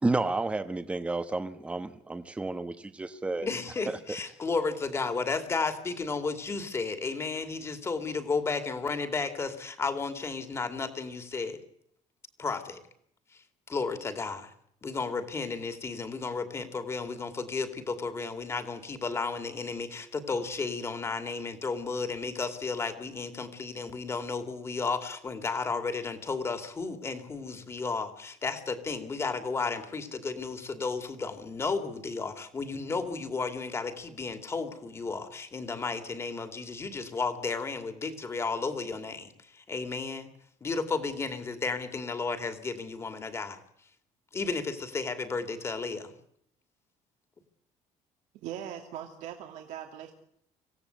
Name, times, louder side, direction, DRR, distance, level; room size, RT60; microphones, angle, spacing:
voice 1, 0.0-3.5 4.1-4.2, right 2 dB, 10° right, 1.1 m, -31 dB
voice 2, 3.4-11.6 12.4-12.8 13.3-13.4 13.7-14.5 14.8-40.3 40.6-43.6 44.3-46.1, left 4 dB, 20° left, 2.6 m, -33 dB
voice 3, 48.3-50.1, right 10 dB, 75° right, 2.7 m, -40 dB
26.0 x 16.5 x 8.2 m
cardioid pair, 170°, 13 cm